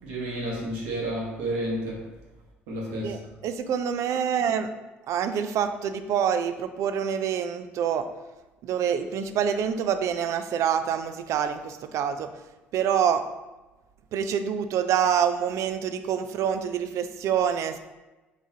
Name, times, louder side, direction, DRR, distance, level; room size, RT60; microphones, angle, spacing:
voice 1, 0.0-2.1 2.7-3.2, right 1 dB, 70° right, -4 dB, 1.2 m, -31 dB
voice 2, 3.0-4.7 5.1-8.1 8.6-12.3 12.7-13.2 14.1-17.8, right 8 dB, 55° right, 9 dB, 0.3 m, -26 dB
4.0 x 3.5 x 2.8 m, 1.1 s
hypercardioid pair, 60°, 6 cm